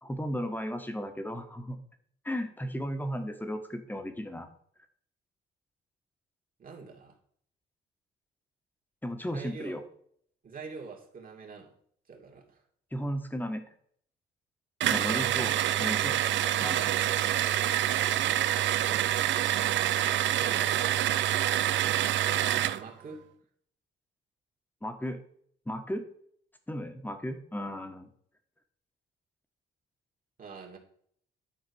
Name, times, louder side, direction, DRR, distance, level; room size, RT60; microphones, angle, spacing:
voice 1, 0.0-1.8 2.2-4.5 9.0-9.8 12.9-13.6 14.9-16.2 16.6-16.9 24.8-25.2 25.6-26.0 26.7-28.1, equal, 10° left, 6 dB, 1.6 m, -35 dB
voice 2, 6.6-7.2 9.2-9.8 10.4-11.7 12.1-12.6 18.8-19.2 20.4-20.8 22.4-23.2 30.4-30.8, right 5 dB, 45° right, 1 dB, 2.6 m, -45 dB
sound 1, 14.8-22.8, right 12 dB, 70° right, 0.6 m, -27 dB
11.0 x 4.5 x 6.4 m, 0.62 s
cardioid pair, 90°, 20 cm